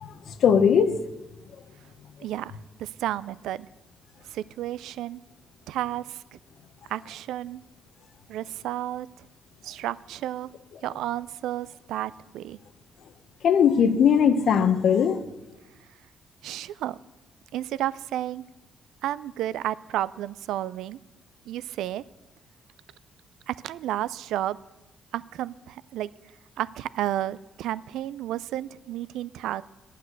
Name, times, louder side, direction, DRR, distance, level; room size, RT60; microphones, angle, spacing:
voice 1, 0.0-1.0 13.4-15.3, left 7 dB, 65° left, 0.9 m, -20 dB
voice 2, 2.2-3.7 4.3-5.2 5.7-6.4 6.9-7.6 8.3-9.1 9.6-10.5 10.8-12.6 16.4-17.0 17.5-18.4 19.0-21.0 21.5-22.0 23.5-24.6 25.1-26.1 26.6-29.6, right 13 dB, 85° right, 0.3 m, -32 dB
9.2 x 8.5 x 7.8 m
cardioid pair, 90°, 0 cm